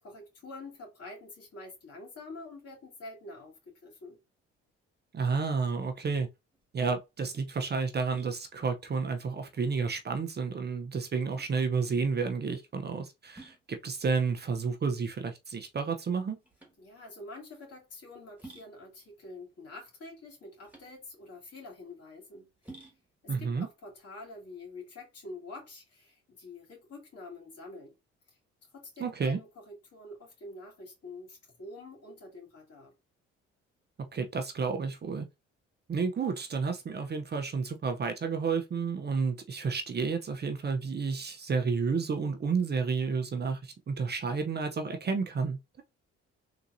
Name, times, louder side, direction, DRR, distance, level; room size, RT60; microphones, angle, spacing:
voice 1, 0.0-4.2 16.8-22.9 23.2-28.0 28.3-28.4 28.7-33.0, left 2 dB, 55° left, 2.4 m, -47 dB
voice 2, 5.1-6.3 6.7-16.4 23.3-23.7 29.0-29.4 34.1-35.3 35.9-45.8, right 5 dB, 35° right, 0.7 m, -31 dB
sound 1, 6.5-25.1, right 2 dB, 5° right, 1.7 m, -56 dB
3.8 x 2.8 x 2.6 m
supercardioid pair, 55°, 29 cm